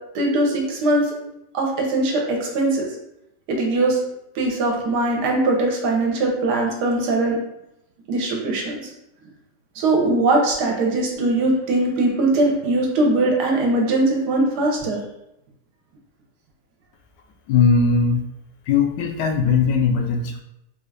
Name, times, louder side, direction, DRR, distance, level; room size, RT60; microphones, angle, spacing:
voice 1, 0.1-1.1 1.5-2.9 3.5-4.0 4.3-7.4 8.1-8.8 9.8-15.0, right 2 dB, 75° right, 0 dB, 1.3 m, -21 dB
voice 2, 17.5-18.2 18.7-20.4, left 5 dB, 90° left, 4 dB, 1.2 m, -19 dB
3.8 x 2.4 x 3.2 m, 0.86 s
omnidirectional pair, 1.8 m